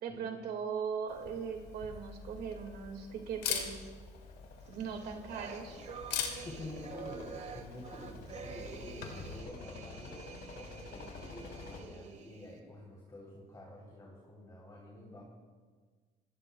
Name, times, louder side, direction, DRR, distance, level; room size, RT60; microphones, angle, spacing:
voice 1, 0.0-3.9 4.7-5.7, right 6 dB, 70° right, 3 dB, 2.1 m, -39 dB
Camera, 1.1-9.4, left 7 dB, 90° left, 2.6 m, -43 dB
sound 1, 3.2-11.8, left 4 dB, 70° left, 5.5 m, -51 dB
sound 2, 4.7-12.6, right 6 dB, 40° right, 1.3 m, -49 dB
voice 2, 6.4-15.2, left 1 dB, 20° left, -4 dB, 3.5 m, -49 dB
27.5 x 16.5 x 2.3 m, 1.5 s
cardioid pair, 110°, 17 cm